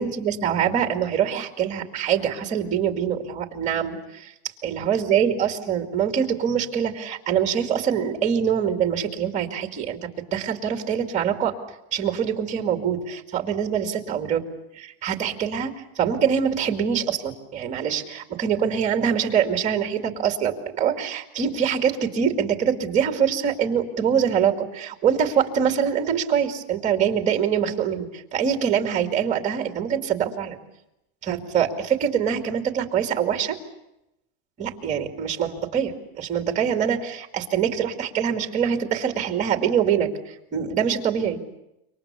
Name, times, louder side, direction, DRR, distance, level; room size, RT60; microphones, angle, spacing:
voice 1, 0.0-4.3 4.6-11.5 11.9-14.4 14.7-30.6 31.2-33.6 34.6-41.4, right 8 dB, 20° right, 5 dB, 2.4 m, -24 dB
27.0 x 24.5 x 7.0 m, 0.90 s
supercardioid pair, 165°, 32 cm